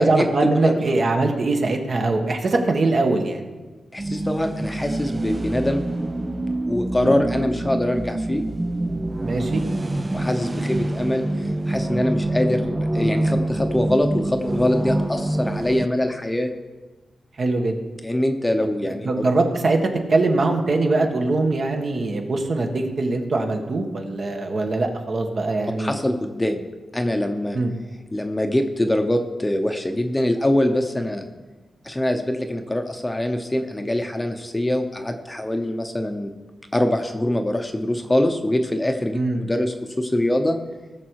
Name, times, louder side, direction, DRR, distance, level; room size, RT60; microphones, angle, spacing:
voice 1, 0.0-3.4 6.9-7.1 9.2-9.6 17.4-17.8 18.6-18.7 19.0-26.0 27.5-27.7 39.1-39.4, right 2 dB, 50° right, 3 dB, 1.5 m, -22 dB
voice 2, 3.9-5.8 6.7-8.4 10.1-16.5 18.0-19.1 25.8-26.7 26.9-27.6 28.1-31.3 31.8-36.3 36.7-40.6, left 1 dB, 15° left, 5 dB, 0.9 m, -23 dB
sound 1, 4.0-15.9, right 1 dB, 20° right, 0.5 m, -26 dB
18.0 x 6.8 x 4.8 m, 1.3 s
wide cardioid pair, 110°, 0 cm